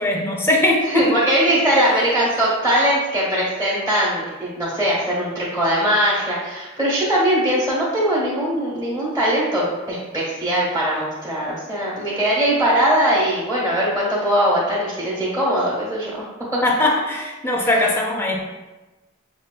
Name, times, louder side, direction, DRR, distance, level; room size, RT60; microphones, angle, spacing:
voice 1, 0.0-1.2 16.6-18.4, left 1 dB, 10° left, 0 dB, 0.4 m, -20 dB
voice 2, 0.9-16.1 16.5-16.6, equal, 15° right, -8 dB, 1.2 m, -20 dB
6.1 x 2.4 x 2.2 m, 1.1 s
head